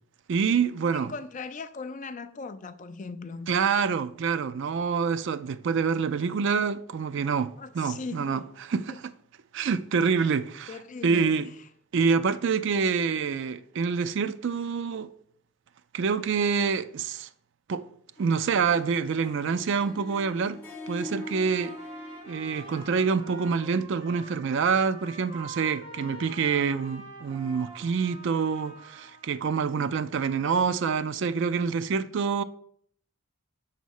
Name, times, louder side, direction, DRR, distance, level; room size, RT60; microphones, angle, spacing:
voice 1, 0.3-1.1 3.5-8.4 8.7-9.1 9.5-10.8 11.0-11.5 11.9-15.1 15.9-17.3 17.7-17.9 18.2-20.6 20.9-21.7 22.3-32.4, right 5 dB, 55° right, 0.3 m, -26 dB
voice 2, 0.9-3.5 7.6-8.5 8.9-9.0 10.7-11.3 11.6-11.7, left 4 dB, 35° left, 0.4 m, -39 dB
Harp, 18.2-23.5, left 1 dB, 10° left, 0.7 m, -44 dB
Trumpet, 21.2-29.3, right 2 dB, 25° right, 2.9 m, -46 dB
6.3 x 4.1 x 6.3 m
head